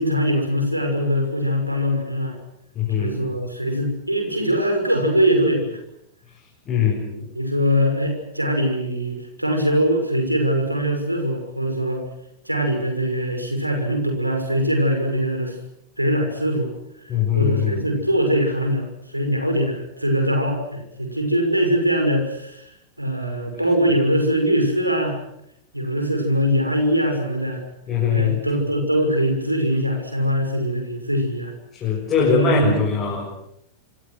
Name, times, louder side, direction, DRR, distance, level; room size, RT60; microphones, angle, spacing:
voice 1, 0.0-2.4 2.9-5.8 6.7-12.0 12.4-15.6 16.0-16.7 17.3-22.7 23.0-25.2 25.7-27.6 28.1-31.5 32.2-32.8, equal, 90° right, 4 dB, 6.2 m, -22 dB
voice 2, 2.7-3.2 6.7-7.0 17.1-17.8 27.9-28.4 31.7-33.3, left 7 dB, 30° left, -2 dB, 6.8 m, -21 dB
27.5 x 25.5 x 6.3 m, 0.76 s
figure-of-eight pair, 90°, 0 cm